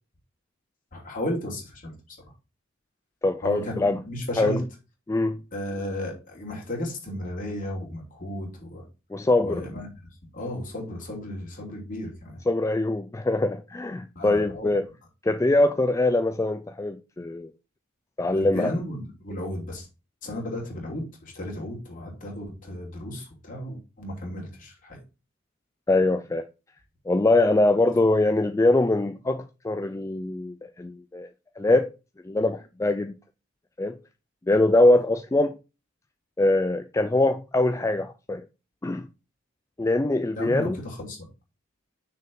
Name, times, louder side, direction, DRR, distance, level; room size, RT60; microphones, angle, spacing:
voice 1, 0.9-1.9 3.4-4.6 5.5-8.8 9.4-9.9 10.3-12.4 14.1-14.7 18.3-19.9 20.2-25.0 40.3-41.2, left 1 dB, 40° left, 2.9 m, -34 dB
voice 2, 3.2-4.0 4.4-4.6 5.1-5.4 9.1-9.6 12.5-14.9 15.2-17.5 18.2-18.7 25.9-26.4 27.1-31.3 31.6-31.9 32.2-33.1 33.8-34.0 34.5-35.6 36.4-38.5 38.8-39.1 39.8-40.8, left 2 dB, 15° left, 0.3 m, -23 dB
6.4 x 4.4 x 5.4 m
head